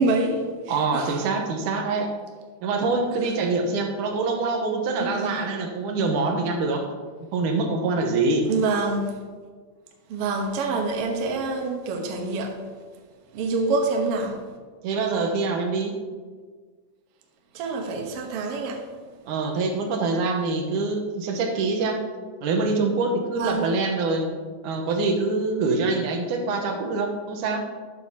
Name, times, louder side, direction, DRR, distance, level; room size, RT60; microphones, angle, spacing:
voice 1, 0.0-1.2 4.9-5.5 8.5-9.2 10.1-12.6 13.3-14.4 17.5-18.9 23.4-23.7, right 3 dB, 60° right, 1.7 m, -26 dB
voice 2, 0.7-2.1 2.6-6.9 7.3-8.5 14.8-16.0 19.3-22.0 22.4-24.3 24.6-27.7, right 3 dB, 85° right, 2.5 m, -25 dB
12.0 x 8.4 x 2.8 m
omnidirectional pair, 3.6 m